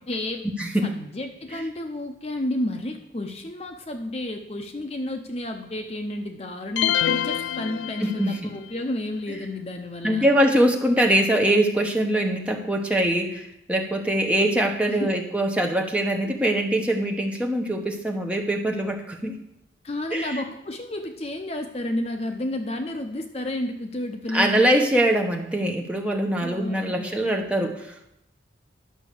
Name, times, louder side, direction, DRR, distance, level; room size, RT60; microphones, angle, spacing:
voice 1, 0.1-0.5 0.8-10.3 14.9-15.2 19.8-24.8 26.4-27.5, left 1 dB, 35° left, 6 dB, 0.6 m, -31 dB
sound 1, 6.8-8.6, left 10 dB, 85° left, 0.3 m, -26 dB
voice 2, 8.0-8.5 10.0-19.3 20.1-20.4 24.3-27.9, right 1 dB, 5° right, 2 dB, 1.1 m, -23 dB
11.0 x 5.9 x 6.8 m, 0.81 s
head